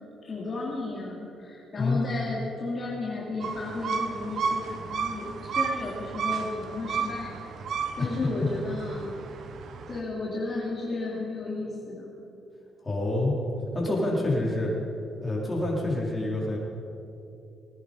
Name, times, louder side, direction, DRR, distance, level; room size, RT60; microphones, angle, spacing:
voice 1, 0.2-7.3 8.0-9.1 9.9-12.1, left 3 dB, 40° left, -5 dB, 3.1 m, -33 dB
sound 1, 3.4-10.0, right 5 dB, 65° right, 1.1 m, -33 dB
voice 2, 12.8-13.4 13.7-14.7 15.2-16.6, left 2 dB, 20° left, -4 dB, 4.4 m, -27 dB
20.5 x 10.5 x 5.5 m, 2.8 s
cardioid pair, 90°, 0 cm